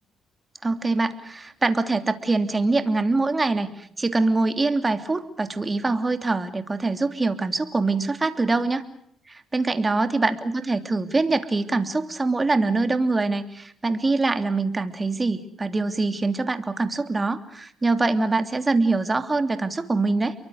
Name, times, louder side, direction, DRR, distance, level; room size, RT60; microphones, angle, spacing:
voice 1, 0.6-8.8 9.3-20.3, right 3 dB, 25° right, 9 dB, 3.0 m, -24 dB
30.0 x 23.5 x 6.6 m, 0.68 s
cardioid pair, 90°, 0 cm